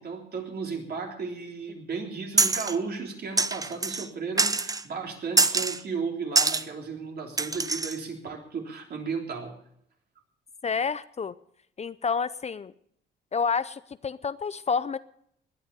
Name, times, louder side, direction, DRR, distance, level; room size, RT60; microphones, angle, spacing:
voice 1, 0.0-9.6, right 5 dB, 55° right, 2 dB, 3.5 m, -34 dB
sound 1, 2.4-2.8 3.4-4.1 4.4-4.8 5.4-5.8 6.4-6.6 7.4-8.0, right 3 dB, 20° right, 0.7 m, -24 dB
voice 2, 10.6-11.3 11.8-12.7 13.3-15.0, left 5 dB, 35° left, 15 dB, 0.6 m, -29 dB
19.5 x 9.4 x 6.8 m, 0.71 s
cardioid pair, 90°, 20 cm